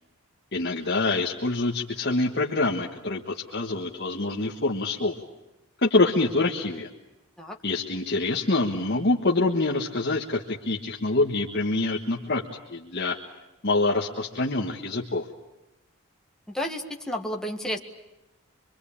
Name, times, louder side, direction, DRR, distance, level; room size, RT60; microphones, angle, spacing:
voice 1, 0.5-5.1 5.8-6.9 7.6-12.4 12.7-13.2 13.6-15.3, left 2 dB, 50° left, 0 dB, 1.5 m, -25 dB
voice 2, 16.5-17.8, equal, 5° left, 0 dB, 1.8 m, -31 dB
25.5 x 24.0 x 8.6 m, 1.0 s
head